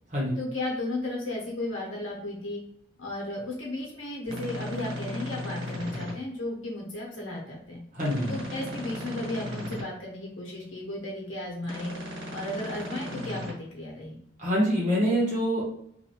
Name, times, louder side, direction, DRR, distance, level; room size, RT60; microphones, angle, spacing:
voice 1, 0.4-2.6 3.0-7.8 8.3-11.9 12.3-14.2, left 1 dB, 85° left, -3 dB, 1.2 m, -34 dB
sound 1, 4.3-6.1 7.9-9.8 11.6-13.5, left 1 dB, 75° right, 1.4 m, -36 dB
voice 2, 7.9-8.4 14.4-15.6, equal, 40° right, -6 dB, 1.1 m, -25 dB
2.8 x 2.6 x 3.0 m, 0.68 s
head